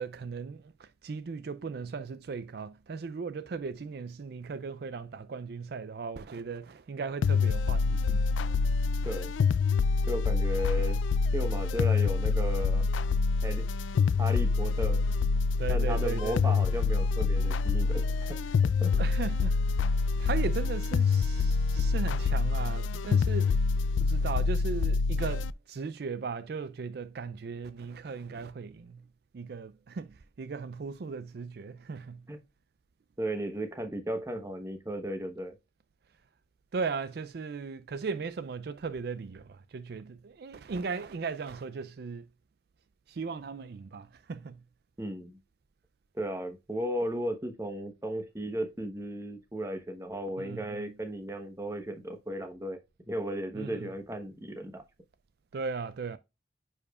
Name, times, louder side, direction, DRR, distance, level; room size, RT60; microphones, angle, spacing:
voice 1, 0.0-8.3 15.4-16.7 18.0-18.2 18.9-29.1 29.3-32.3 36.7-42.3 43.1-44.6 50.4-51.0 53.5-53.9 55.5-56.2, right 5 dB, 55° right, 0.4 m, -37 dB
sound 1, 7.2-25.5, left 4 dB, 85° left, 0.4 m, -26 dB
voice 2, 10.1-11.0 11.3-12.8 13.4-13.7 14.2-15.0 15.7-18.4 18.8-18.9 32.3-32.4 33.2-35.6 45.0-45.4 46.1-52.8 53.1-54.8, right 1 dB, 15° right, 1.0 m, -35 dB
9.7 x 4.9 x 2.4 m
head